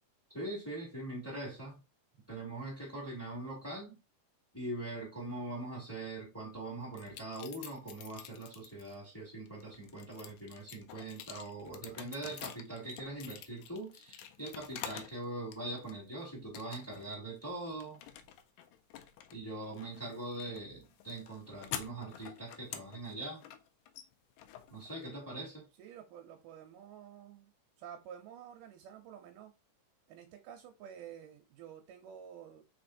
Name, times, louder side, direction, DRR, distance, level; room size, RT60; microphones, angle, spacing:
voice 1, 0.3-1.8 2.3-4.0 4.5-18.0 19.3-23.4 24.7-25.6, right 2 dB, 5° left, 1.8 m, -42 dB
sound 1, 6.9-9.0 9.5-15.2 15.5-16.1 16.5-17.1 17.4-25.4, left 10 dB, 80° left, 1.9 m, -48 dB
voice 2, 11.7-12.0 25.8-27.5 27.8-29.5 30.1-32.6, right 9 dB, 85° right, 2.2 m, -50 dB
4.6 x 4.1 x 2.6 m
omnidirectional pair, 3.7 m